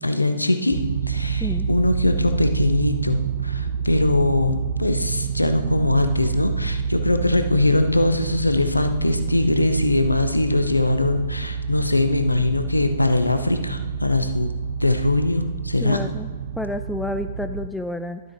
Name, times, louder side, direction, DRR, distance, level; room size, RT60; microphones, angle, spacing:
voice 1, 0.0-14.5 14.8-16.0, left 2 dB, 90° left, 8 dB, 0.6 m, -21 dB
sound 1, 0.7-17.7, right 6 dB, 65° right, 0.5 m, -28 dB
voice 2, 15.8-16.3 16.6-18.2, left 1 dB, 5° left, 8 dB, 0.3 m, -29 dB
12.5 x 8.0 x 2.9 m, 1.5 s
figure-of-eight pair, 115°, 0 cm